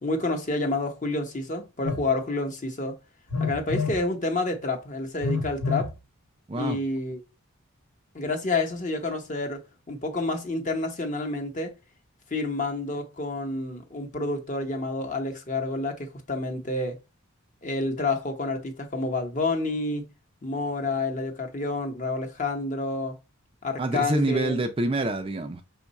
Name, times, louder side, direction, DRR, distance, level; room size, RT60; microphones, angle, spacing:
voice 1, 0.0-2.9 3.4-5.9 6.5-7.2 8.1-9.6 9.9-11.7 12.3-17.0 17.6-20.1 20.4-23.2 23.6-24.6, left 2 dB, 35° left, 0.8 m, -29 dB
Telephone, 1.8-2.1 3.3-4.0 5.2-5.9, left 4 dB, 75° left, 0.8 m, -28 dB
voice 2, 6.5-6.8 23.8-25.6, right 2 dB, 25° right, 0.4 m, -26 dB
5.4 x 2.3 x 4.0 m
head